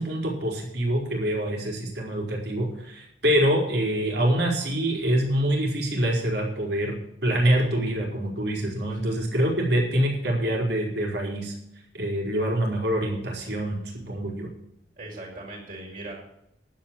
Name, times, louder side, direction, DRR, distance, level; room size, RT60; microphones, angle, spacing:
voice 1, 0.0-11.5 11.9-13.8 14.1-14.5, right 1 dB, 65° right, 0 dB, 4.6 m, -25 dB
voice 2, 15.0-16.1, right 2 dB, 45° right, -2 dB, 4.9 m, -39 dB
11.5 x 9.0 x 7.5 m, 0.79 s
head